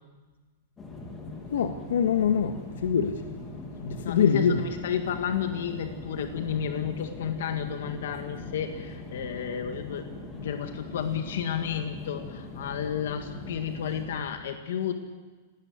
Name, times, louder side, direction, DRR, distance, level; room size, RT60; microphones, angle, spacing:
sound 1, 0.8-14.2, left 2 dB, 10° left, 2.6 m, -41 dB
voice 1, 1.5-2.5 2.8-3.2 3.8-4.7, left 7 dB, 90° left, 6 dB, 1.6 m, -24 dB
voice 2, 4.0-10.1 10.3-14.9, left 8 dB, 65° left, 6 dB, 1.9 m, -32 dB
18.5 x 18.0 x 9.5 m, 1.3 s
supercardioid pair, 180°, 0 cm